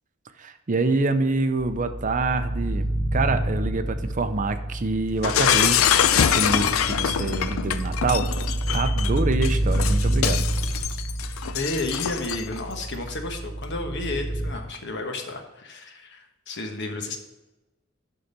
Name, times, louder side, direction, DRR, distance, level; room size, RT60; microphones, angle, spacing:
voice 1, 0.4-5.8 6.2-8.3 8.7-10.5, right 3 dB, 40° right, 9 dB, 0.6 m, -26 dB
sound 1, 1.6-14.5, right 1 dB, 10° left, 1.3 m, -28 dB
Shatter, 5.2-12.6, left 9 dB, 90° left, 0.5 m, -24 dB
voice 2, 11.5-17.2, left 2 dB, 60° left, 4 dB, 1.2 m, -32 dB
11.0 x 3.9 x 5.3 m, 1.0 s
head